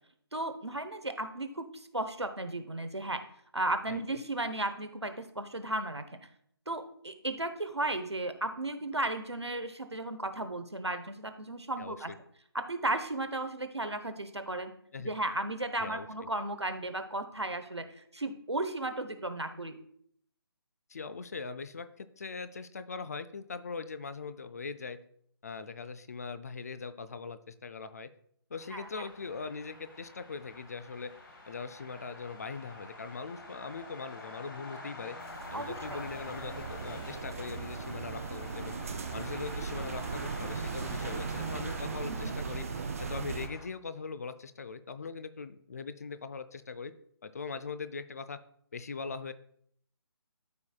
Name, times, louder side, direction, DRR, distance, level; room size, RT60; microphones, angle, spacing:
voice 1, 0.3-3.2 3.5-6.0 6.7-12.1 12.5-14.7 15.0-19.8 28.7-28.9 35.5-36.0 42.0-42.3, right 2 dB, 85° right, 9 dB, 0.9 m, -35 dB
voice 2, 11.8-12.2 14.9-15.1 15.8-16.1 20.9-25.0 25.4-28.1 28.5-31.1 31.5-35.2 35.5-38.8 39.1-42.7 43.0-46.9 47.2-48.4 48.7-49.3, left 4 dB, 35° left, 13 dB, 0.4 m, -41 dB
sound 1, 28.5-43.6, left 2 dB, 55° left, 1.8 m, -46 dB
sound 2, 35.2-43.5, right 5 dB, 35° right, 0.4 m, -38 dB
13.0 x 4.7 x 2.3 m, 0.66 s
figure-of-eight pair, 145°, 14 cm